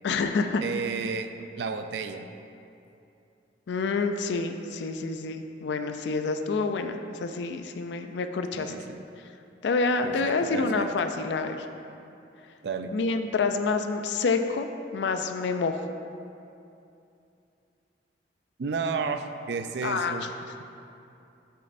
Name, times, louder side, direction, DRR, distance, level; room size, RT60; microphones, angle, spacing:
voice 1, 0.0-0.6 3.7-8.7 9.6-11.7 12.9-14.7 14.9-15.9 19.8-20.2, left 4 dB, 75° left, 7 dB, 0.4 m, -28 dB
voice 2, 0.6-1.3 1.6-2.3 8.5-9.0 10.0-10.9 12.6-13.0 18.6-20.3, right 5 dB, 65° right, 8 dB, 0.4 m, -32 dB
8.0 x 6.5 x 2.6 m, 2.7 s
head